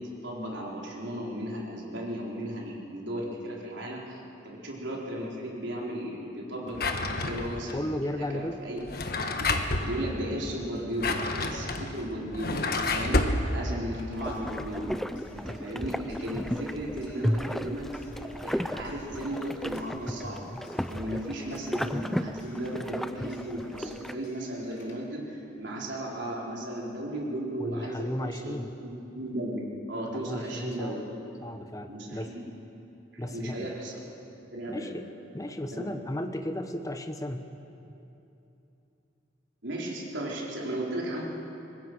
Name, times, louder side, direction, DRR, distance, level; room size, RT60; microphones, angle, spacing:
voice 1, 0.0-7.8 8.3-8.8 9.2-9.5 9.8-13.2 13.5-14.9 15.3-20.5 20.9-28.5 28.8-31.0 31.9-32.4 33.1-34.0 34.5-34.9 35.8-35.9 39.6-41.2, right 1 dB, 70° right, -3 dB, 4.1 m, -35 dB
Drawer open or close, 6.7-7.7 8.8-9.9 10.8-13.4, left 3 dB, 50° left, 1.4 m, -29 dB
voice 2, 7.7-8.6 27.6-28.7 30.1-31.0 31.4-32.3 33.2-33.7 34.7-35.1 35.3-37.5, left 1 dB, 15° left, 6 dB, 1.1 m, -34 dB
Clock, 13.7-25.3, equal, 70° left, 3.5 m, -50 dB
sound 1, 14.2-24.1, equal, ahead, 0.4 m, -34 dB
24.0 x 20.5 x 6.2 m, 2.9 s
head